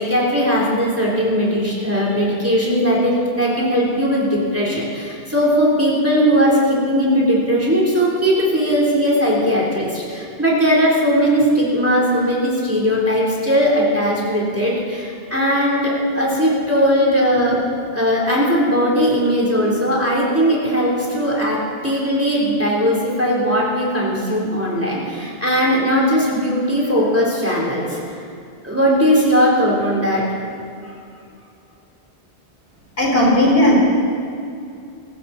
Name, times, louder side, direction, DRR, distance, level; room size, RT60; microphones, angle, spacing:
voice 1, 0.0-17.6 17.9-28.2 28.6-30.2 30.8-30.9, equal, 15° right, -4 dB, 3.7 m, -18 dB
voice 2, 33.0-33.8, left 1 dB, 65° left, -2 dB, 4.0 m, -14 dB
24.5 x 14.0 x 4.3 m, 2.5 s
omnidirectional pair, 1.1 m